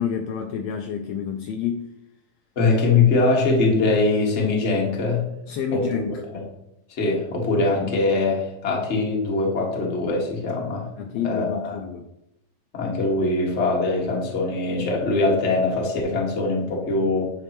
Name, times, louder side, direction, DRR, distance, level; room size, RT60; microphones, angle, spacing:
voice 1, 0.0-1.9 5.5-6.2 11.0-12.0, left 8 dB, 80° left, 5 dB, 1.6 m, -28 dB
voice 2, 2.5-5.2 5.7-6.0 6.3-6.4 7.0-10.9 11.2-11.8 12.7-17.3, left 3 dB, 35° left, -1 dB, 1.2 m, -22 dB
9.7 x 5.3 x 3.0 m, 0.83 s
omnidirectional pair, 3.4 m